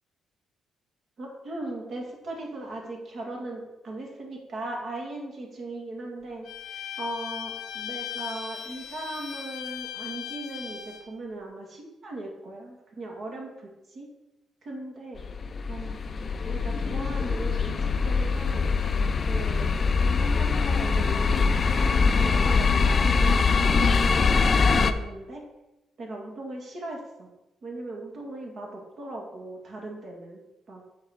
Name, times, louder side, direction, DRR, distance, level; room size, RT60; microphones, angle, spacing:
voice 1, 1.2-6.5 6.7-14.1 14.6-15.2 15.7-18.7 19.0-25.5 26.0-27.3 27.6-30.4 30.7-30.8, right 2 dB, 55° right, 0 dB, 2.1 m, -38 dB
Bowed string instrument, 6.4-11.1, left 9 dB, 75° left, 0.9 m, -38 dB
Electric Train Pulls Up, 15.2-24.9, left 5 dB, 40° left, 0.5 m, -23 dB
7.2 x 4.2 x 6.5 m, 1.0 s
cardioid pair, 90°, 0 cm